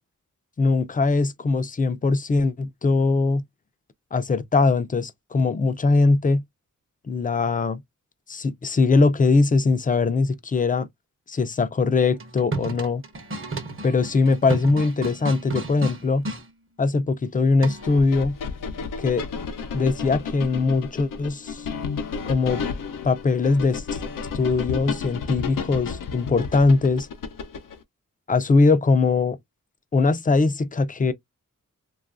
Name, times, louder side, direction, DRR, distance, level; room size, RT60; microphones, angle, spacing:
voice 1, 0.6-3.4 4.1-6.4 7.1-7.8 8.3-10.9 11.3-13.0 13.8-16.2 16.8-18.4 19.0-19.2 19.7-21.7 22.2-22.6 23.0-24.0 24.3-27.1 28.3-29.4 29.9-31.1, left 3 dB, 25° left, 0.4 m, -21 dB
sound 1, 12.1-16.4 17.6-18.0, right 2 dB, 40° right, 0.8 m, -32 dB
sound 2, 17.8-27.8, left 5 dB, 85° left, 0.6 m, -32 dB
2.8 x 2.4 x 2.5 m
wide cardioid pair, 80°, 32 cm